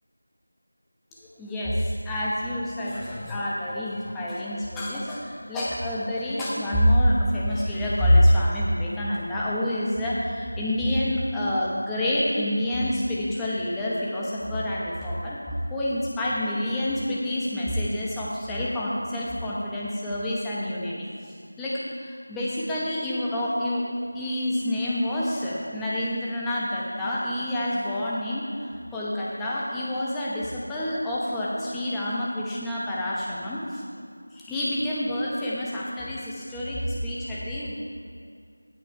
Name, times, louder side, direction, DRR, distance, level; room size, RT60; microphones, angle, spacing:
voice 1, 1.4-23.8 24.1-28.4 28.9-33.8 34.3-37.9, left 1 dB, 5° left, -7 dB, 0.9 m, -27 dB
16.0 x 6.2 x 4.7 m, 2.1 s
figure-of-eight pair, 175°, 0 cm